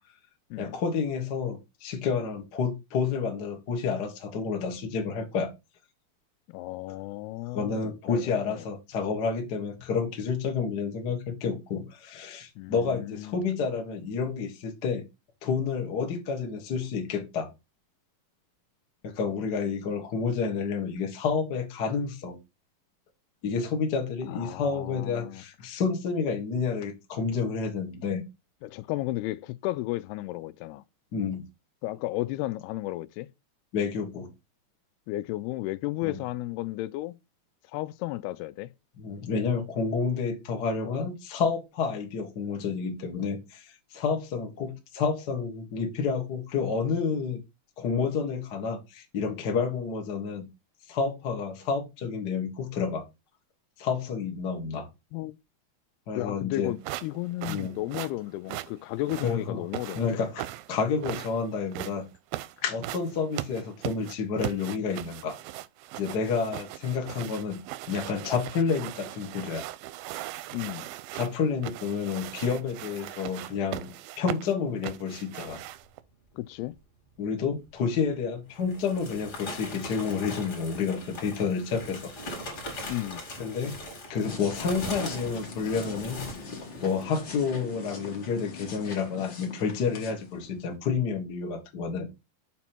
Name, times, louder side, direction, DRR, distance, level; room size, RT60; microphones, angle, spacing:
voice 1, 0.6-5.5 6.9-7.0 7.5-15.0 15.4-17.5 19.0-22.4 23.4-28.2 31.1-31.4 33.7-34.3 36.0-36.2 39.0-47.4 47.8-50.5 50.9-53.0 53.8-54.9 56.1-56.7 57.5-57.8 59.2-59.6 59.9-62.0 62.6-65.4 66.0-67.6 67.9-69.6 71.1-75.6 77.2-82.1 83.4-83.8 84.1-86.2 86.8-92.1, left 5 dB, 65° left, 1.0 m, -29 dB
voice 2, 6.5-8.7 12.6-13.4 24.3-25.4 28.6-30.8 31.8-33.3 35.1-37.1 37.7-38.7 55.1-55.4 56.2-60.2 70.5-70.9 76.3-76.8 82.8-83.2, left 17 dB, 90° left, 2.6 m, -34 dB
sound 1, 56.8-76.0, right 16 dB, 80° right, 2.2 m, -39 dB
sound 2, 77.8-77.9 78.5-87.2, left 1 dB, 30° left, 2.6 m, -40 dB
sound 3, 84.2-90.7, left 4 dB, 45° left, 1.6 m, -42 dB
7.0 x 4.2 x 4.3 m
omnidirectional pair, 4.5 m